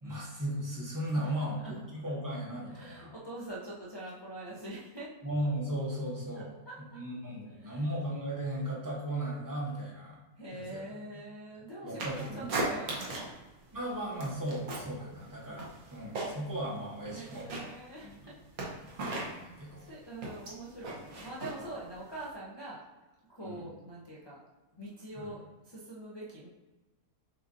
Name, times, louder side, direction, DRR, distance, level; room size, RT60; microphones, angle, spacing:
voice 1, 0.0-1.6 1.9-3.1 5.2-6.5 6.9-10.2 10.5-10.8 11.8-12.6 13.7-17.5 18.0-18.1 19.0-19.9 23.4-23.7 25.2-25.3, right 1 dB, 15° right, -5 dB, 0.8 m, -36 dB
voice 2, 1.2-1.9 2.6-5.1 6.3-7.0 7.6-7.8 10.4-13.3 17.1-18.7 19.8-22.8 23.3-24.4 24.8-26.5, right 1 dB, 35° left, -8 dB, 0.4 m, -44 dB
sound 1, 12.0-13.4 13.7-15.0 15.3-16.6 16.9-22.3, right 2 dB, 70° right, 1.3 m, -38 dB
6.6 x 2.6 x 2.6 m, 1.2 s
omnidirectional pair, 1.6 m